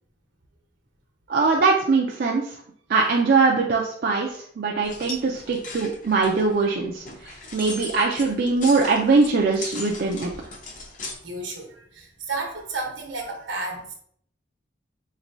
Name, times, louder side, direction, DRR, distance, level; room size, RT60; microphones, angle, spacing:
voice 1, 1.3-2.6 2.9-10.3, right 4 dB, 55° right, 0 dB, 0.4 m, -22 dB
sound 1, 4.8-11.1, left 2 dB, 45° left, 0.7 m, -38 dB
voice 2, 11.0-13.9, right 3 dB, 80° right, 1 dB, 1.0 m, -33 dB
4.3 x 3.1 x 2.6 m, 0.63 s
head